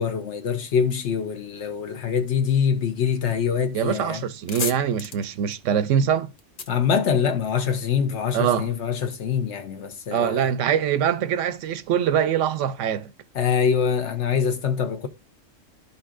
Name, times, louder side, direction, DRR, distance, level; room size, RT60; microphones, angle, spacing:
voice 1, 0.0-4.2 6.7-10.5 13.3-15.1, left 7 dB, 70° left, 1.2 m, -24 dB
voice 2, 3.7-6.3 8.3-8.7 10.1-13.1, right 9 dB, 85° right, 0.9 m, -23 dB
sound 1, 4.4-7.8, left 5 dB, 50° left, 0.8 m, -36 dB
12.0 x 5.4 x 2.5 m
omnidirectional pair, 1.2 m